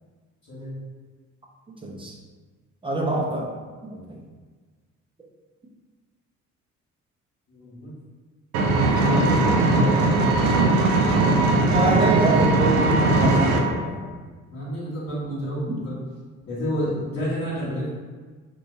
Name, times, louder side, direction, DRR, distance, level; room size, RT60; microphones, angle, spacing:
voice 1, 0.5-0.8 7.5-7.9 8.9-10.7 14.5-16.0 16.5-17.9, equal, 45° left, -10 dB, 1.1 m, -30 dB
voice 2, 1.8-2.1 2.8-3.5 3.9-4.2 11.7-14.1 15.7-15.8, right 2 dB, 15° right, -1 dB, 0.7 m, -25 dB
Engine, 8.5-13.6, right 2 dB, 60° right, 0.6 m, -19 dB
2.7 x 2.2 x 4.1 m, 1.4 s
figure-of-eight pair, 45°, 39 cm